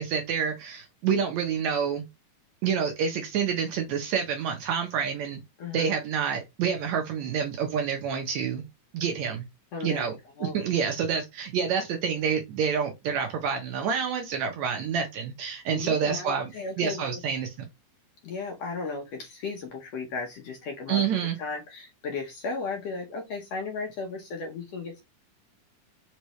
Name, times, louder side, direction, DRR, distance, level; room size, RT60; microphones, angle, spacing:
voice 1, 0.0-2.0 2.6-5.4 5.7-8.6 8.9-9.4 9.8-10.1 10.4-16.5 16.8-17.7 20.9-21.4, right 7 dB, 75° right, 1.7 m, -28 dB
voice 2, 9.7-10.1 10.4-10.6 15.7-17.1 18.2-25.0, left 4 dB, 70° left, 1.7 m, -35 dB
5.3 x 3.2 x 3.0 m
omnidirectional pair, 3.7 m